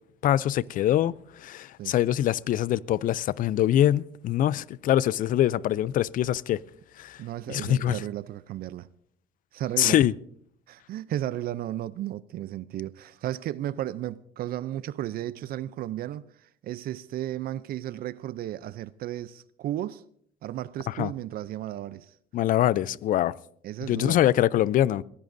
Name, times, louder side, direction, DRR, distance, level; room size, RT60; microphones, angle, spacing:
voice 1, 0.2-6.6 7.0-7.2 7.5-8.0 9.8-10.1 20.9-21.1 22.3-23.3 23.8-25.0, left 12 dB, 55° left, 0.4 m, -24 dB
voice 2, 7.2-8.9 9.5-10.1 10.7-20.0 20.4-22.1 23.6-24.2, right 13 dB, 60° right, 0.5 m, -34 dB
22.0 x 15.5 x 2.6 m
cardioid pair, 110°, 17 cm